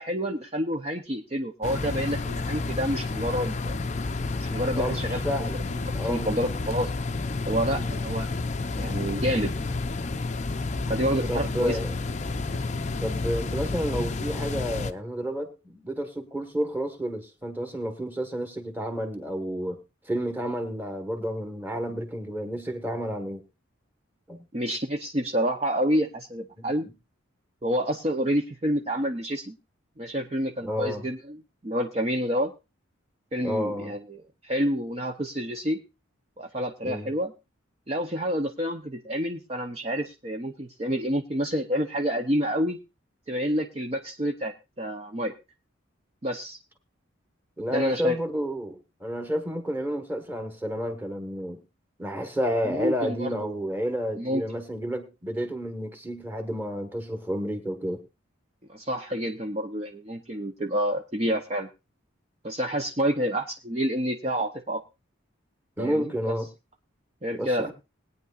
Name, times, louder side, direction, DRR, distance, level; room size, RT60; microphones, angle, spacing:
voice 1, 0.0-3.8 4.4-5.2 5.5-5.6 6.0-6.9 7.5-8.3 8.8-9.7 10.9-11.8 24.5-26.9 27.6-29.6 30.0-32.5 33.3-35.8 36.4-37.3 37.9-42.8 43.3-45.3 46.2-46.6 47.7-48.2 52.7-53.5 54.2-54.4 58.7-61.7 62.4-64.8 65.8-66.3 67.2-67.7, equal, 30° right, 3 dB, 0.7 m, -28 dB
sound 1, 1.6-14.9, left 3 dB, 35° left, 0.5 m, -30 dB
voice 2, 4.7-5.6 5.9-6.4 7.7-8.2 11.3-11.9 13.0-23.4 24.3-24.4 26.6-26.9 30.6-31.0 33.4-33.9 36.8-37.1 47.6-51.6 52.0-58.0 65.8-66.5 67.3-67.7, equal, 10° right, 7 dB, 1.4 m, -31 dB
20.0 x 9.4 x 2.4 m, 0.27 s
head